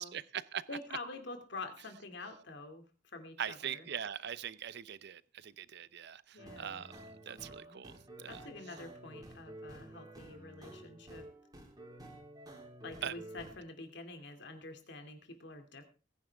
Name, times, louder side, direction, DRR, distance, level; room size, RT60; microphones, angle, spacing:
voice 1, 0.0-0.6 3.4-6.9 7.3-7.9 8.2-8.4 13.0-13.1, right 8 dB, 60° right, 0.6 m, -41 dB
voice 2, 0.7-2.8 3.1-3.9 6.3-6.8 7.3-7.8 8.3-11.3 12.8-15.8, left 3 dB, 65° left, 2.5 m, -47 dB
sound 1, 6.4-13.6, right 1 dB, 20° right, 3.3 m, -51 dB
20.5 x 10.5 x 3.5 m
head